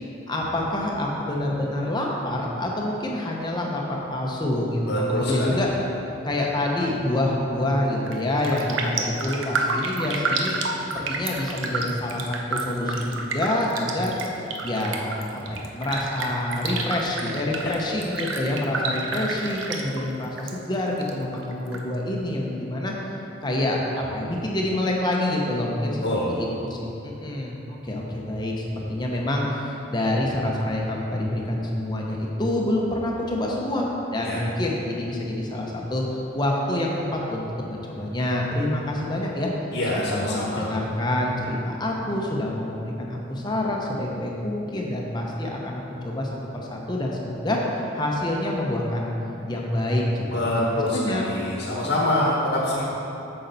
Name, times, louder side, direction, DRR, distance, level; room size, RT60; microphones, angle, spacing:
voice 1, 0.3-5.7 6.2-10.6 10.9-14.3 14.6-23.1 23.4-26.0 26.3-27.5 27.8-36.0 36.3-39.5 40.1-49.1 49.5-51.2, left 1 dB, 20° left, -1 dB, 0.7 m, -27 dB
voice 2, 4.9-5.6 17.6-17.7 26.0-26.3 34.2-34.4 39.7-40.8 50.3-52.8, left 1 dB, 65° left, -4 dB, 1.2 m, -25 dB
Raindrop, 8.0-8.2 8.4-20.5 20.8-21.8 22.2-22.3, right 3 dB, 75° right, 0.7 m, -30 dB
8.4 x 6.6 x 4.0 m, 2.9 s
head